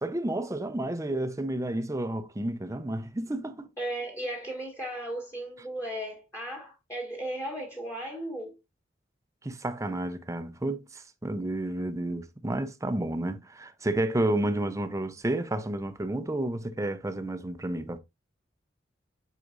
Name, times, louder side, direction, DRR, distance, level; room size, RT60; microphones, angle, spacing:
voice 1, 0.0-3.7 9.4-18.0, right 1 dB, 15° right, 0.6 m, -31 dB
voice 2, 3.8-8.6, right 1 dB, 15° left, 1.6 m, -36 dB
7.8 x 5.0 x 2.5 m
head